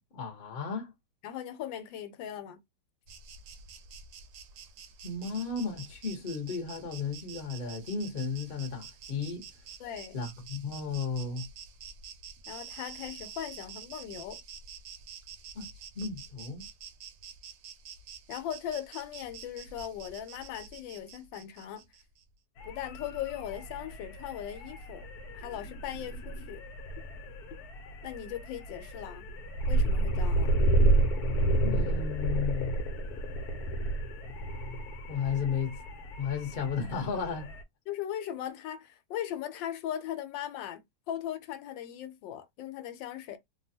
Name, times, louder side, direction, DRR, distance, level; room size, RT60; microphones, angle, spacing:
voice 1, 0.1-0.9 5.0-9.5 10.1-11.4 15.5-15.7 15.9-16.7 31.6-32.8 35.1-35.8 36.2-37.5, left 5 dB, 40° left, 0.9 m, -34 dB
voice 2, 1.2-2.6 9.8-10.3 12.5-14.4 18.3-21.9 22.6-25.1 25.3-26.6 28.0-29.3 29.7-30.6 37.9-43.4, left 10 dB, 85° left, 1.3 m, -39 dB
Insect, 3.1-22.2, right 7 dB, 75° right, 1.2 m, -48 dB
sound 1, 22.6-37.6, right 2 dB, 65° left, 1.0 m, -31 dB
3.2 x 2.3 x 2.7 m
omnidirectional pair, 2.0 m